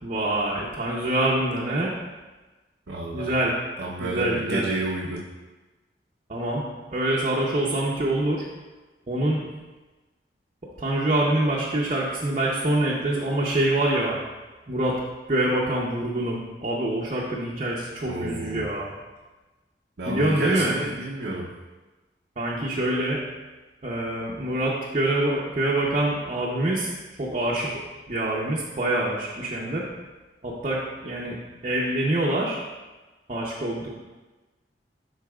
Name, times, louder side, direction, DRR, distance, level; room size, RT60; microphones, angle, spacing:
voice 1, 0.0-1.9 3.1-3.6 4.0-4.7 6.3-6.6 6.9-8.4 9.1-9.4 10.8-14.2 14.7-15.0 15.3-18.9 20.1-20.8 22.4-23.2 23.8-26.9 27.2-27.8 28.1-29.8 30.4-31.4 31.6-32.6 33.3-33.9, right 1 dB, 40° right, -5 dB, 0.7 m, -25 dB
voice 2, 2.9-3.3 3.8-5.3 18.1-18.8 20.0-21.5, right 2 dB, 90° right, -4 dB, 0.7 m, -30 dB
11.0 x 4.0 x 2.3 m, 1.2 s
head